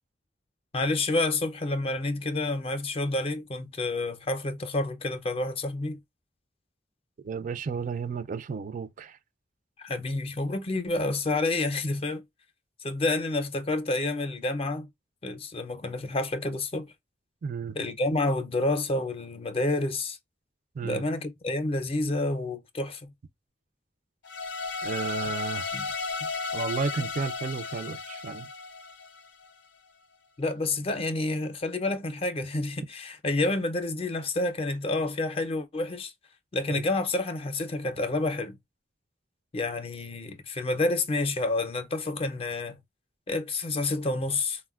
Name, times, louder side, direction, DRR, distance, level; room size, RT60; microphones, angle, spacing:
voice 1, 0.7-6.0 9.8-12.2 12.8-14.9 15.2-16.9 17.7-20.2 20.8-23.1 25.7-25.9 30.4-36.1 36.5-38.6 39.5-42.8 43.3-44.6, left 2 dB, 30° left, 0.4 m, -29 dB
voice 2, 7.2-9.2 17.4-17.8 20.7-21.0 24.8-25.7 26.2-28.5, right 5 dB, 45° right, 0.3 m, -33 dB
sound 1, 24.2-29.5, left 4 dB, 90° left, 0.5 m, -34 dB
3.7 x 2.1 x 2.3 m
head